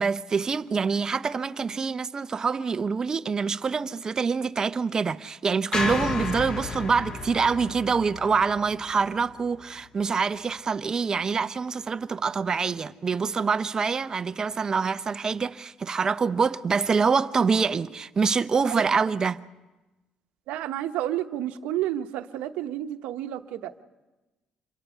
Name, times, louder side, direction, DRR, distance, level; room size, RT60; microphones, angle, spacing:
voice 1, 0.0-19.4, right 5 dB, 30° right, 0.7 m, -25 dB
sound 1, 5.7-10.0, left 3 dB, 35° left, 1.4 m, -33 dB
voice 2, 20.5-23.8, right 12 dB, 85° right, 1.0 m, -31 dB
27.0 x 23.0 x 5.6 m
cardioid pair, 115°, 2 cm